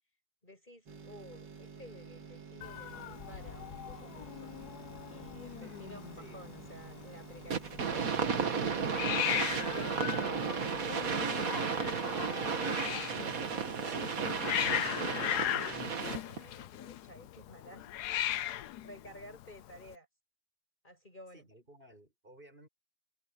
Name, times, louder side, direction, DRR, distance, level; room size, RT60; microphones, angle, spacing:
voice 1, 0.4-4.5 5.1-8.8 9.7-12.3 13.2-17.9 18.8-20.1 20.8-21.5, left 1 dB, 25° left, 5.8 m, -52 dB
sound 1, 0.9-12.5 12.8-12.9, right 5 dB, 70° right, 3.4 m, -50 dB
Hiss, 2.6-19.9, left 12 dB, 70° left, 1.2 m, -38 dB
voice 2, 5.6-6.5 21.3-22.7, right 1 dB, 30° right, 8.2 m, -57 dB
sound 2, 7.5-16.4, right 5 dB, 50° right, 2.0 m, -33 dB
omnidirectional pair, 1.9 m